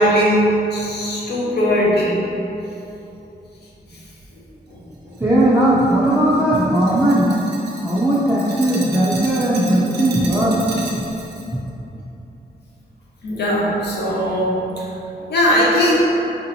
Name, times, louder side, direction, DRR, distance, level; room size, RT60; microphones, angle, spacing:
voice 1, 0.0-2.1 4.7-4.8 13.2-14.5 15.3-16.0, equal, 80° left, -6 dB, 0.9 m, -18 dB
Glass, 5.1-11.5, right 3 dB, 75° right, 0.6 m, -35 dB
voice 2, 5.2-7.4 7.8-10.6, right 1 dB, 10° right, -8 dB, 0.4 m, -17 dB
5.0 x 2.7 x 2.7 m, 2.9 s
wide cardioid pair, 175°, 17 cm